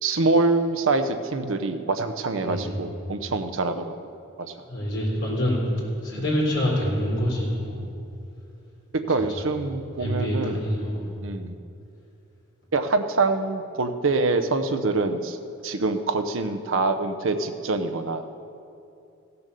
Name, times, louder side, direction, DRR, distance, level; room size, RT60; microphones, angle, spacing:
voice 1, 0.0-4.0 4.4-4.5 6.1-6.3 8.9-10.6 11.2-11.6 12.7-15.4 15.6-18.3, right 3 dB, 80° right, 8 dB, 0.7 m, -25 dB
voice 2, 2.4-2.8 4.7-5.6 6.0-7.8 10.0-11.1, equal, 60° left, -4 dB, 3.7 m, -26 dB
15.5 x 6.9 x 6.8 m, 2.6 s
head